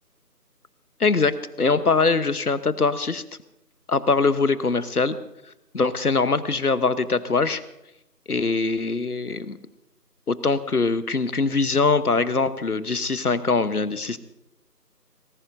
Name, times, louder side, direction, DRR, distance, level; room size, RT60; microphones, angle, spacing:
voice 1, 1.0-1.3 1.6-3.2 3.9-5.2 5.7-7.6 8.3-9.6 10.3-14.2, left 4 dB, 65° left, 14 dB, 1.1 m, -22 dB
25.0 x 19.5 x 2.6 m, 0.85 s
figure-of-eight pair, 170°, 48 cm